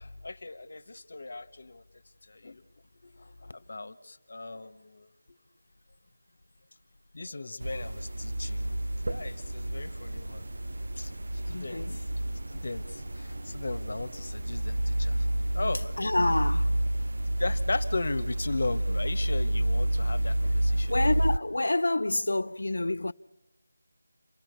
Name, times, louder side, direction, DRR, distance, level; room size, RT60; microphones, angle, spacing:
voice 1, 0.0-1.8 2.3-2.6 3.0-5.4 7.1-10.5 10.7-11.1 11.5-12.1 12.5-15.2 15.5-15.9 17.4-21.1, left 3 dB, 40° left, 1.1 m, -37 dB
sound 1, 7.6-21.4, right 1 dB, 50° right, 0.7 m, -30 dB
voice 2, 11.5-12.0 16.0-16.8 20.9-23.1, left 2 dB, 75° left, 0.7 m, -28 dB
28.0 x 17.0 x 6.8 m
figure-of-eight pair, 180°, 0 cm